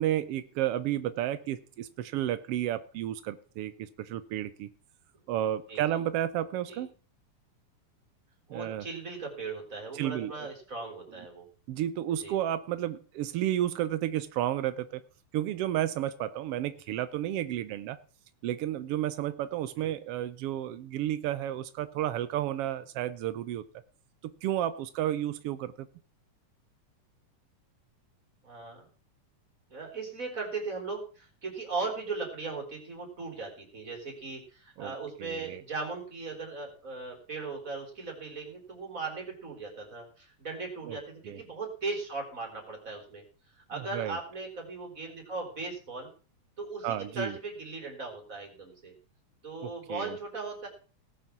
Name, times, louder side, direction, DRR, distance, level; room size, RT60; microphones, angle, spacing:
voice 1, 0.0-4.7 5.3-6.9 8.5-8.8 9.9-10.5 11.7-15.0 15.3-18.0 18.4-23.6 24.2-25.9 34.8-34.9 35.2-35.6 40.9-41.0 41.3-41.4 43.8-44.2 46.8-47.3 49.6-50.2, right 12 dB, 85° right, 13 dB, 1.3 m, -32 dB
voice 2, 8.5-11.5 12.2-12.4 16.9-17.0 19.7-19.9 28.4-28.9 29.7-43.2 43.5-46.1 46.6-48.9 49.4-50.7, right 3 dB, 25° right, 1 dB, 4.2 m, -38 dB
18.5 x 6.9 x 6.0 m, 0.38 s
omnidirectional pair, 3.6 m